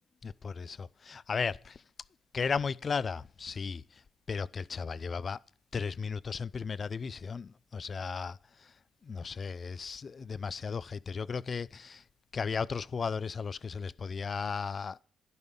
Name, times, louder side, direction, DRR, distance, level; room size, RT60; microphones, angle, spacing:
voice 1, 0.2-1.8 2.3-3.8 4.3-5.4 5.7-8.4 9.0-12.0 12.3-15.0, left 5 dB, 40° left, 0.5 m, -35 dB
11.5 x 11.0 x 5.4 m
cardioid pair, 90°, 0 cm